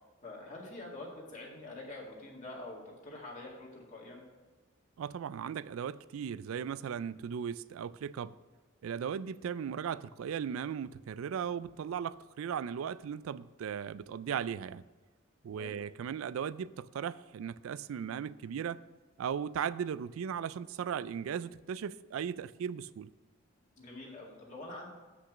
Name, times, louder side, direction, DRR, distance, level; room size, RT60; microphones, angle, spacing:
voice 1, 0.2-4.2 15.5-15.8 23.8-24.9, left 2 dB, 35° left, 2.0 m, -46 dB
voice 2, 5.0-8.4 8.8-14.8 15.4-18.8 19.2-23.1, right 8 dB, 80° right, 0.3 m, -37 dB
8.0 x 6.0 x 5.9 m
head